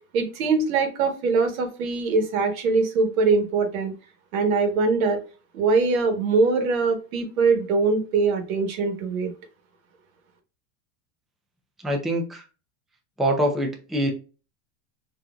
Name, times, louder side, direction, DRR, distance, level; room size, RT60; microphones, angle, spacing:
voice 1, 0.1-3.9 4.3-5.2 5.5-9.3, right 4 dB, 80° right, 6 dB, 1.2 m, -22 dB
voice 2, 11.8-12.4 13.2-14.1, right 1 dB, ahead, 1 dB, 0.5 m, -24 dB
4.3 x 2.6 x 2.3 m, 0.34 s
supercardioid pair, 115°, 41 cm